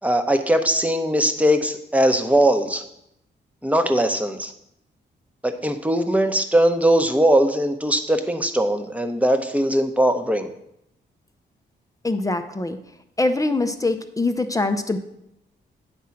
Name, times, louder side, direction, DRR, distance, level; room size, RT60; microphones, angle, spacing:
voice 1, 0.0-2.8 3.6-4.5 5.4-10.5, right 1 dB, 5° right, 6 dB, 0.9 m, -20 dB
voice 2, 12.0-12.8 13.2-15.0, left 2 dB, 15° left, 8 dB, 0.6 m, -23 dB
9.5 x 3.7 x 5.8 m, 0.79 s
cardioid pair, 75°, 19 cm